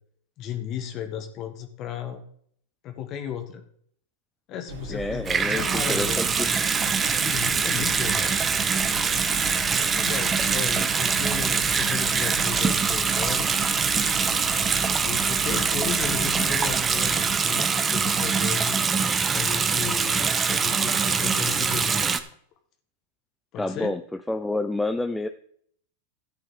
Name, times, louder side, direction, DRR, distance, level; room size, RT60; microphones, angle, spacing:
voice 1, 0.4-2.2 2.8-3.6 4.5-6.2 7.2-8.4 9.8-13.5 15.0-18.8 19.3-22.1 23.5-23.9, left 9 dB, 40° left, 6 dB, 1.5 m, -35 dB
sound 1, 4.7-17.4, right 2 dB, 75° right, 2.0 m, -39 dB
voice 2, 4.9-6.5 23.6-24.0 24.3-25.3, left 2 dB, 5° left, 8 dB, 0.5 m, -28 dB
Water tap faucet / Sink (filling or washing) / Bathtub (filling or washing), 5.2-22.2, right 5 dB, 20° right, 0.9 m, -24 dB
13.0 x 8.6 x 3.8 m, 0.62 s
hypercardioid pair, 120°, 0 cm